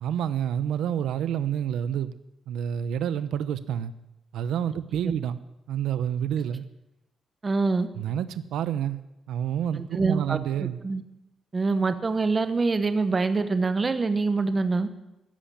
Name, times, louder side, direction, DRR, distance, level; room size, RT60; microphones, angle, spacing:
voice 1, 0.0-2.1 2.5-3.9 4.3-5.4 5.7-6.6 8.0-9.0 9.3-10.8, right 9 dB, 85° right, 0.8 m, -28 dB
voice 2, 7.4-7.9 9.8-11.0 11.5-14.9, right 3 dB, 20° right, 1.0 m, -25 dB
14.0 x 11.5 x 8.7 m
cardioid pair, 160°, 0 cm